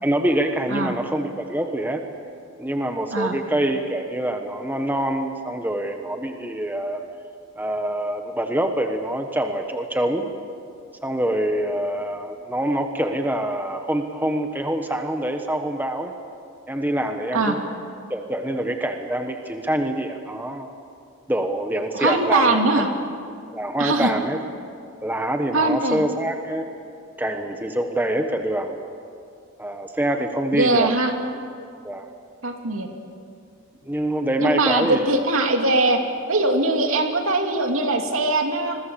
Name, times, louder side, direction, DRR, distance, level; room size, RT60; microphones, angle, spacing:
voice 1, 0.0-2.0 2.6-7.0 7.6-10.3 11.0-16.1 16.7-17.7 18.1-20.7 21.3-22.9 23.5-24.4 25.0-26.7 27.2-28.8 29.6-30.9 31.8-32.1 33.8-35.0, right 1 dB, 10° right, 5 dB, 1.2 m, -25 dB
voice 2, 21.9-22.9 23.8-24.1 25.5-26.0 30.5-31.1 32.4-32.9 34.4-36.0 36.3-38.8, right 2 dB, 75° right, 3 dB, 2.6 m, -21 dB
28.0 x 22.0 x 7.0 m, 2.3 s
head